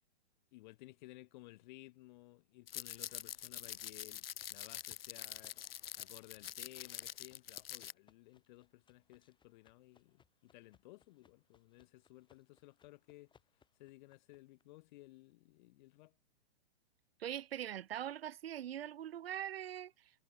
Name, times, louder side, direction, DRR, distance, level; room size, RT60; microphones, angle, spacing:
voice 1, 0.5-5.6 5.9-13.3 13.8-16.2, left 20 dB, 45° left, 4.5 m, -57 dB
sound 1, 2.7-7.9, left 10 dB, 60° left, 1.2 m, -46 dB
sound 2, 4.1-14.6, left 6 dB, 15° left, 4.8 m, -72 dB
voice 2, 17.2-19.9, right 11 dB, 60° right, 0.8 m, -42 dB
figure-of-eight pair, 115°, 33 cm